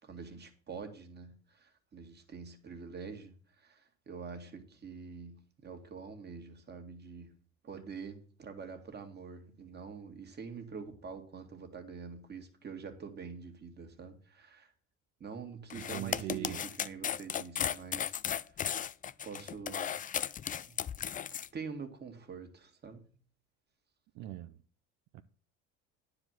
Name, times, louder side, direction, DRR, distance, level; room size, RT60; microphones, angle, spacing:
voice 1, 0.0-7.3 7.6-14.7 15.2-18.2 18.5-18.7 19.2-19.9 20.6-20.8 21.3-23.1, right 5 dB, 30° right, 2.2 m, -46 dB
sound 1, 15.7-21.5, left 9 dB, 25° left, 0.4 m, -35 dB
voice 2, 15.7-16.7 24.1-24.6 25.1-25.2, right 15 dB, 60° right, 0.7 m, -41 dB
10.0 x 4.9 x 7.6 m
supercardioid pair, 95°, 32 cm